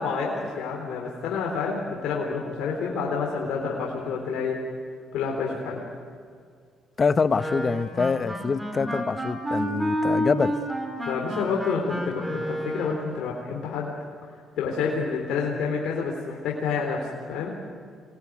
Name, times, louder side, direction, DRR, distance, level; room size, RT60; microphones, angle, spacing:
voice 1, 0.0-4.6 5.1-5.8 11.0-13.9 14.6-17.5, left 5 dB, 80° left, -1 dB, 4.0 m, -28 dB
voice 2, 7.0-10.6, left 5 dB, 40° left, 13 dB, 1.0 m, -25 dB
Wind instrument woodwind instrument, 7.3-13.1, equal, 15° right, 5.2 m, -30 dB
26.5 x 20.0 x 9.5 m, 2.1 s
cardioid pair, 75°, 0 cm